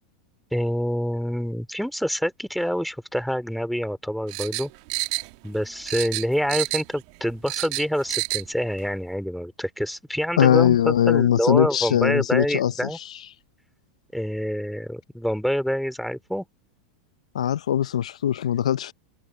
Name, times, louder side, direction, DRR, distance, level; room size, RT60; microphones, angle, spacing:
voice 1, 0.5-4.7 5.4-13.0 14.1-16.4, equal, ahead, 3.2 m, -26 dB
sound 1, 4.3-5.6 5.9-7.0 7.3-8.5 8.8-8.9, right 26 dB, 60° right, 1.5 m, -29 dB
voice 2, 10.4-12.7 17.3-18.9, left 10 dB, 80° left, 0.6 m, -20 dB
hypercardioid pair, 105°, 3 cm